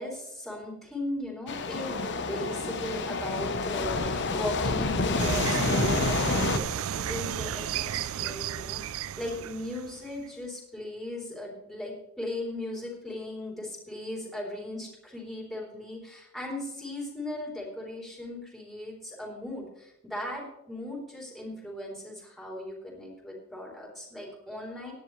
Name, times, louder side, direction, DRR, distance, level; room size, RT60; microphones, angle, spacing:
voice 1, 0.0-24.9, left 1 dB, ahead, -3 dB, 3.5 m, -37 dB
sound 1, 1.5-6.6, left 3 dB, 55° left, 1.0 m, -28 dB
sound 2, 5.2-10.3, right 10 dB, 65° right, 0.4 m, -33 dB
17.0 x 10.5 x 3.3 m, 0.84 s
head